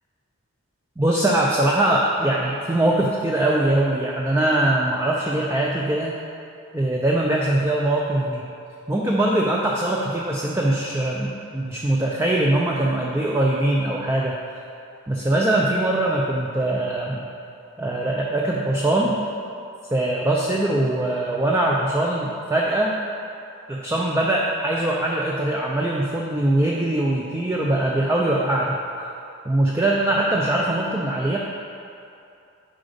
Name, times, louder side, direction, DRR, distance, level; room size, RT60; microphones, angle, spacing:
voice 1, 1.0-6.1 6.7-8.5 8.9-14.4 15.1-17.2 17.8-19.2 19.9-23.0 23.7-28.8 29.5-31.4, right 1 dB, 10° right, -3 dB, 0.4 m, -22 dB
7.6 x 5.0 x 5.1 m, 2.6 s
head